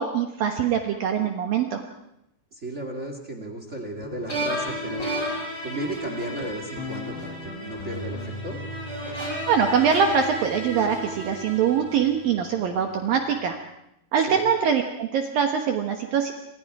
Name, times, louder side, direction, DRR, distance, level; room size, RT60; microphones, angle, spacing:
voice 1, 0.0-1.8 9.5-13.6 14.1-16.3, right 7 dB, 65° right, 4 dB, 2.4 m, -23 dB
voice 2, 2.5-5.1 5.6-8.6 14.3-14.4, right 1 dB, 40° right, 4 dB, 1.0 m, -34 dB
Guitar, 4.0-13.5, left 3 dB, 65° left, 4.3 m, -40 dB
sound 1, 4.3-12.5, right 1 dB, 15° left, 6.1 m, -34 dB
29.0 x 27.0 x 4.8 m, 0.80 s
omnidirectional pair, 5.4 m